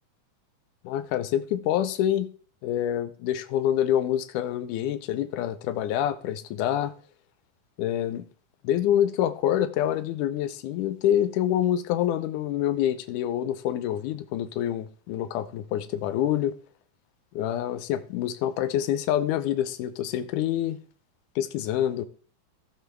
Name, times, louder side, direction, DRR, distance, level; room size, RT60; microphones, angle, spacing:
voice 1, 0.8-2.3 2.6-6.9 7.8-8.3 8.6-16.6 17.3-20.8 21.4-22.1, left 11 dB, 80° left, 2.1 m, -26 dB
15.0 x 6.3 x 3.4 m
omnidirectional pair, 4.0 m